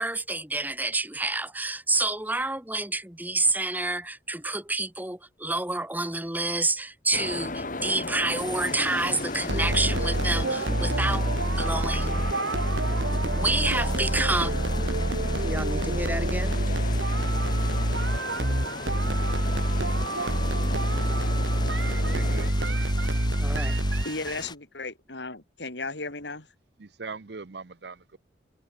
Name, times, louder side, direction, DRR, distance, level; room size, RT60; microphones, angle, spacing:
voice 1, 0.0-11.3 11.6-12.1 13.4-14.5 15.4-16.6 23.4-23.8, right 2 dB, 10° right, 2.3 m, -28 dB
sound 1, 7.1-22.5, left 2 dB, 45° left, 2.4 m, -36 dB
sound 2, 8.4-24.6, left 4 dB, 25° left, 7.3 m, -43 dB
sound 3, 9.5-24.4, right 1 dB, 80° right, 2.9 m, -26 dB
voice 2, 21.8-22.8 26.8-28.2, right 4 dB, 65° right, 0.8 m, -41 dB
voice 3, 24.0-26.5, left 3 dB, 75° left, 4.0 m, -35 dB
head